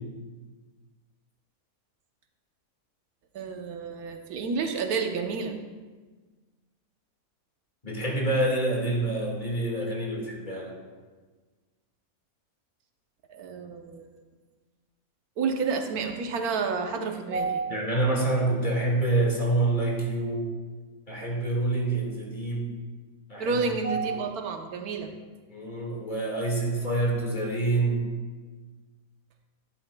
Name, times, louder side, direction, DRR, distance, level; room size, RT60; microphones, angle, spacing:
voice 1, 3.3-5.6 13.3-14.2 15.4-17.7 23.4-25.1, right 5 dB, 85° right, 5 dB, 1.4 m, -30 dB
voice 2, 7.8-10.8 17.7-20.5 21.1-22.7 23.3-23.6 25.5-28.1, right 2 dB, 35° left, -2 dB, 1.9 m, -27 dB
12.0 x 11.0 x 2.3 m, 1.4 s
omnidirectional pair, 1.5 m